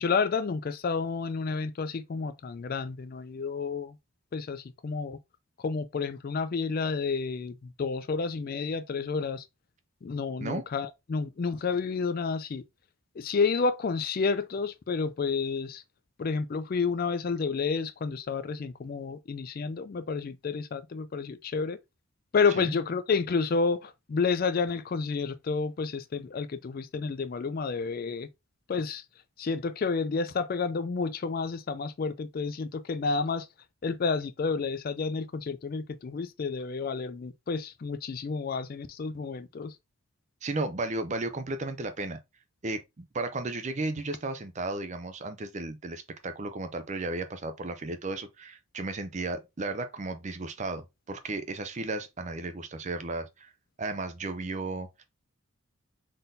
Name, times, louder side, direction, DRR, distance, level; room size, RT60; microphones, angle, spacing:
voice 1, 0.0-3.9 4.3-5.2 5.6-9.4 10.0-12.6 13.2-15.8 16.2-21.8 22.3-28.3 28.7-29.0 29.4-33.5 33.8-39.7, left 4 dB, 40° left, 0.3 m, -30 dB
voice 2, 40.4-42.2 42.6-53.5 53.8-55.1, right 2 dB, 30° right, 0.5 m, -34 dB
3.9 x 3.8 x 2.6 m
head